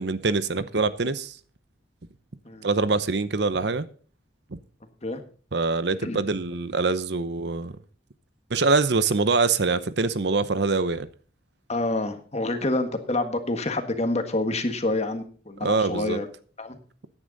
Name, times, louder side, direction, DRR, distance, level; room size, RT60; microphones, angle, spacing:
voice 1, 0.0-1.4 2.6-3.9 5.5-7.7 8.5-11.1 15.6-16.2, right 3 dB, 60° right, 0.8 m, -24 dB
voice 2, 11.7-16.2 16.6-16.8, left 2 dB, 35° left, 1.5 m, -27 dB
15.0 x 10.0 x 4.0 m
head